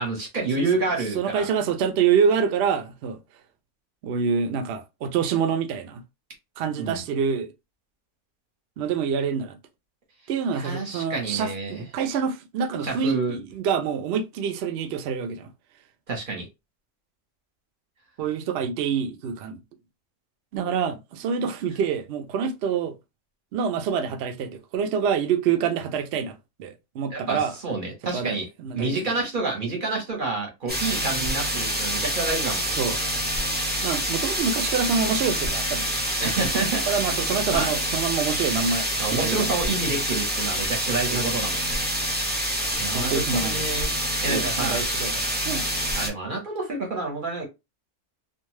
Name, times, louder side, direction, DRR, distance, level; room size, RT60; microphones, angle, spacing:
voice 1, 0.0-1.5 6.8-7.0 10.5-11.8 12.8-13.3 16.1-16.5 27.1-28.5 28.8-32.7 36.2-36.8 37.5-37.7 39.0-41.8 42.8-43.9 44.2-44.8 45.9-47.5, right 3 dB, 40° right, 1.0 m, -28 dB
voice 2, 1.1-3.2 4.0-6.0 6.6-7.5 8.8-9.6 10.3-15.5 18.2-19.6 20.5-22.9 23.5-27.5 28.1-29.1 32.8-33.0 33.8-36.0 36.9-39.7 41.1-41.2 42.9-43.6 44.3-45.7, right 6 dB, 70° right, 0.6 m, -26 dB
sound 1, 30.7-46.1, equal, 15° right, 0.3 m, -27 dB
2.5 x 2.3 x 3.1 m
omnidirectional pair, 1.6 m